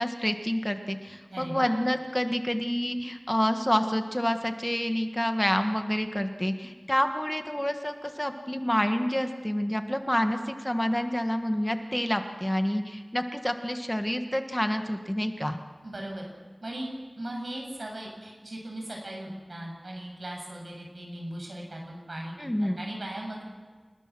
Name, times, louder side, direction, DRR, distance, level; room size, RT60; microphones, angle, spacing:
voice 1, 0.0-15.6 22.4-22.8, equal, 10° left, 6 dB, 1.6 m, -28 dB
voice 2, 1.3-1.7 15.8-16.3 16.6-16.9 17.2-23.4, right 1 dB, 75° right, 0 dB, 7.4 m, -38 dB
29.0 x 19.5 x 6.1 m, 1.5 s
wide cardioid pair, 55°, 0 cm